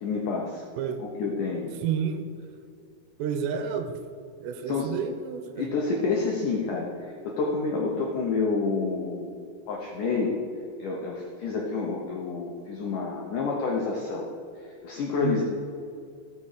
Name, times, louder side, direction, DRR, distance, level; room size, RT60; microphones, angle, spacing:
voice 1, 0.0-0.6 1.0-1.7 4.7-4.9 5.6-9.4 9.7-10.3 10.8-14.3 14.8-15.4, left 4 dB, 80° left, -1 dB, 1.8 m, -28 dB
voice 2, 1.8-2.2 3.2-4.0 4.4-5.7 15.2-15.4, right 7 dB, 85° right, 8 dB, 2.8 m, -30 dB
16.0 x 6.2 x 4.9 m, 2.4 s
omnidirectional pair, 5.1 m